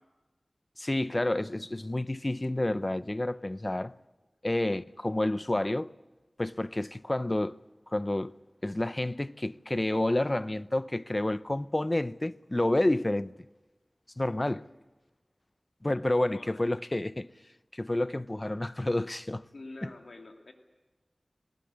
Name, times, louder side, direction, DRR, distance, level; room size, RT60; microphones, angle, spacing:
voice 1, 0.8-4.0 4.4-5.9 6.4-7.6 7.9-8.3 8.6-13.3 14.2-14.6 15.8-17.3 17.7-19.4 19.8-19.9, left 1 dB, 30° left, 0.6 m, -29 dB
voice 2, 14.3-14.6 16.3-16.7 19.5-20.5, left 2 dB, 85° left, 2.6 m, -47 dB
20.5 x 19.0 x 9.6 m
wide cardioid pair, 55°, 0 cm